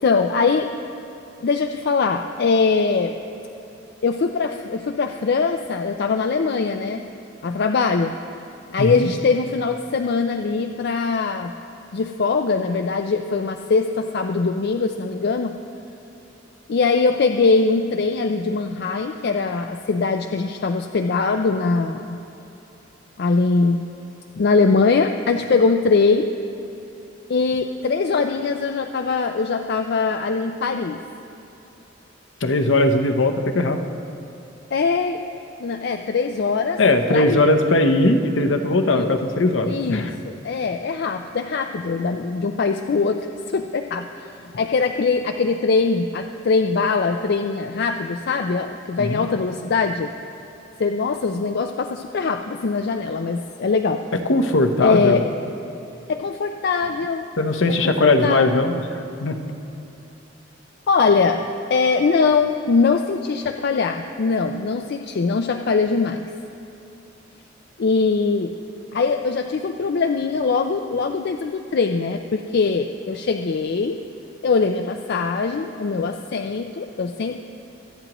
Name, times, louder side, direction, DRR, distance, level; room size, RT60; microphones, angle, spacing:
voice 1, 0.0-0.7 1.4-3.2 4.0-7.0 7.4-8.1 8.7-11.5 11.9-15.5 16.7-22.2 23.2-23.9 24.4-26.3 27.3-31.0 34.7-35.2 35.6-36.8 37.1-37.5 38.9-39.2 39.6-43.2 43.5-50.1 50.8-54.0 54.8-55.2 56.1-57.3 57.7-58.7 60.9-66.3 67.8-68.5 68.9-74.0 74.4-77.4, left 4 dB, 55° left, 5 dB, 0.4 m, -22 dB
voice 2, 32.4-33.8 36.8-40.1 49.0-49.2 54.3-55.2 57.4-58.8 59.2-59.4, left 2 dB, 70° left, 6 dB, 0.8 m, -19 dB
24.5 x 9.0 x 3.0 m, 2.9 s
head